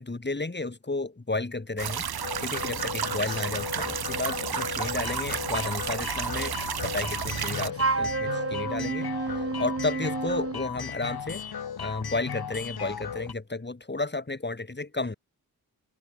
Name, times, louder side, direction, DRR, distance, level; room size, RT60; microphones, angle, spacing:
voice 1, 0.0-2.1 2.4-6.5 6.8-9.1 9.3-11.4 11.8-15.1, left 3 dB, 30° left, 5.7 m, -32 dB
sound 1, 1.8-7.7, right 8 dB, 85° right, 2.8 m, -32 dB
sound 2, 2.2-13.3, left 7 dB, 80° left, 4.2 m, -36 dB
Wind instrument woodwind instrument, 7.7-10.6, right 4 dB, 40° right, 3.2 m, -29 dB
open air
cardioid pair, 55°, 37 cm